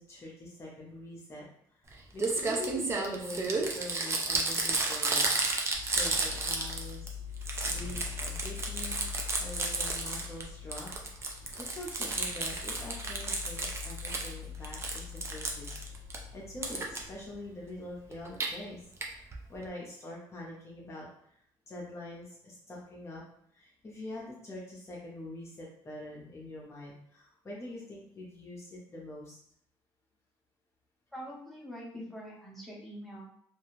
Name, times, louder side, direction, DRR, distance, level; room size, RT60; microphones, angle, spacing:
voice 1, 0.0-1.9 2.1-5.6 6.0-10.9 11.6-15.8 16.3-23.2 23.5-29.4, left 1 dB, 30° left, -4 dB, 0.7 m, -44 dB
Crumpling crinkling, 1.9-2.0 2.2-7.1 7.4-10.4 10.7-14.3 14.6-16.2 16.6-17.0 18.1-18.5 19.0-19.1 19.3-19.4 19.6-19.7, right 3 dB, 30° right, 0.5 m, -32 dB
sound 1, 5.7-17.3, left 8 dB, 75° right, 0.9 m, -44 dB
voice 2, 31.1-33.2, equal, ahead, -4 dB, 0.8 m, -44 dB
2.5 x 2.2 x 3.1 m, 0.66 s
cardioid pair, 110°, 9 cm